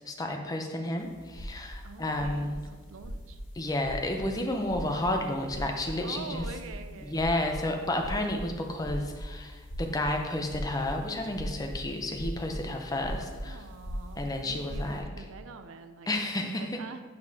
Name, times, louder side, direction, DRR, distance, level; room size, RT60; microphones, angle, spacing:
voice 1, 0.1-2.6 3.5-6.5 7.0-13.6 14.2-15.0 16.1-16.8, left 1 dB, 20° left, 3 dB, 0.5 m, -31 dB
sound 1, 1.0-15.0, equal, 75° left, 1.8 m, -40 dB
voice 2, 1.8-3.4 6.0-7.2 13.4-17.0, right 4 dB, 85° right, 9 dB, 0.4 m, -45 dB
7.9 x 5.2 x 2.8 m, 1.4 s
head